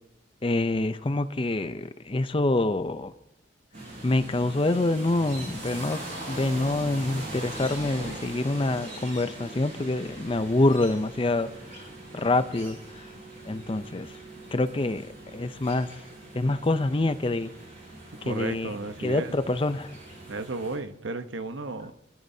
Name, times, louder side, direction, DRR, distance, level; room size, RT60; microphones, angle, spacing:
voice 1, 0.4-3.1 4.0-6.0 6.3-11.5 12.1-12.8 13.5-14.1 14.5-15.1 15.3-15.9 16.3-17.5 18.3-18.7 19.0-19.9, left 2 dB, 25° left, 12 dB, 0.5 m, -26 dB
sound 1, 3.7-20.8, right 1 dB, 45° right, 5.7 m, -41 dB
voice 2, 18.2-19.4 20.3-21.9, right 3 dB, 75° right, 9 dB, 1.0 m, -34 dB
25.5 x 14.0 x 2.8 m, 0.88 s
head